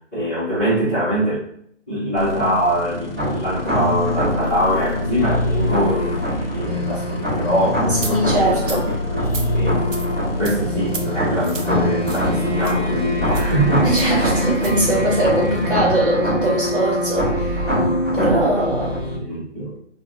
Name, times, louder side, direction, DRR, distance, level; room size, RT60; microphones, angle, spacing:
voice 1, 0.1-1.5 1.9-9.9 10.4-14.3 18.1-18.4 19.1-19.8, right 1 dB, 10° left, -17 dB, 0.8 m, -23 dB
sound 1, 2.2-15.7, left 3 dB, 50° left, 0.5 m, -30 dB
sound 2, 3.2-19.2, equal, 20° right, 1.2 m, -23 dB
voice 2, 7.9-8.8 13.8-17.6 18.1-18.9, right 1 dB, 45° right, -4 dB, 1.3 m, -21 dB
sound 3, 8.0-8.1 8.6-8.8 9.2-9.5 9.9-10.1 10.4-10.6 10.9-11.1 11.4-11.7 12.1-12.3 12.6-12.7 13.3-13.5 14.0-14.1 14.5-14.7, right 4 dB, 85° right, 0.6 m, -32 dB
3.3 x 2.3 x 2.6 m, 0.67 s
figure-of-eight pair, 150°, 37 cm